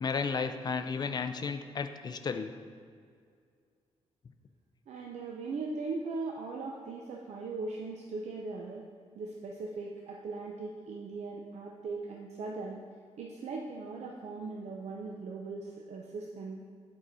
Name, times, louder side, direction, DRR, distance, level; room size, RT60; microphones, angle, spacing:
voice 1, 0.0-2.5, left 5 dB, 35° left, 8 dB, 0.4 m, -33 dB
voice 2, 4.9-8.8 9.1-12.8 13.2-16.6, right 3 dB, 75° right, 0 dB, 0.6 m, -39 dB
8.9 x 4.8 x 4.0 m, 2.2 s
wide cardioid pair, 155°, 12 cm